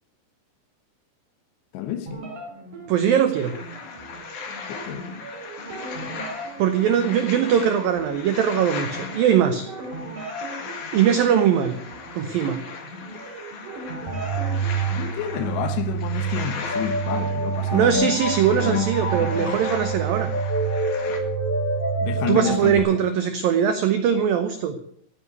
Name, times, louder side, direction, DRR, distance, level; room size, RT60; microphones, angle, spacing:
voice 1, 1.7-2.3 4.7-5.1 13.9-14.4 15.0-18.2 18.6-19.6 21.1-21.2 22.0-22.7, left 10 dB, 75° left, 2.9 m, -30 dB
sound 1, 2.1-17.9, right 1 dB, 45° right, 4.6 m, -39 dB
voice 2, 2.9-3.5 6.6-9.7 10.9-11.7 12.2-12.6 17.7-20.3 22.3-24.7, right 8 dB, 85° right, 2.0 m, -21 dB
sound 2, 3.3-21.2, left 5 dB, 50° left, 2.7 m, -38 dB
sound 3, 14.1-22.8, right 4 dB, 15° left, 1.9 m, -26 dB
14.5 x 9.3 x 8.1 m
omnidirectional pair, 5.5 m